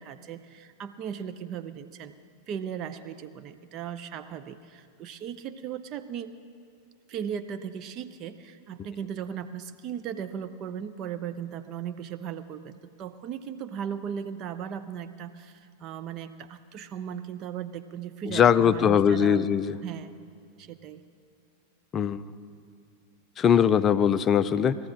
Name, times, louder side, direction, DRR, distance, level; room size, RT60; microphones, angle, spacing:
voice 1, 0.0-2.1 2.5-6.4 7.1-19.5 19.8-20.2 20.6-21.0, right 8 dB, 35° right, 9 dB, 0.6 m, -37 dB
voice 2, 18.3-19.8 21.9-22.2 23.4-24.8, left 8 dB, 25° left, 13 dB, 0.4 m, -21 dB
20.0 x 14.5 x 3.8 m, 2.4 s
figure-of-eight pair, 90°, 0 cm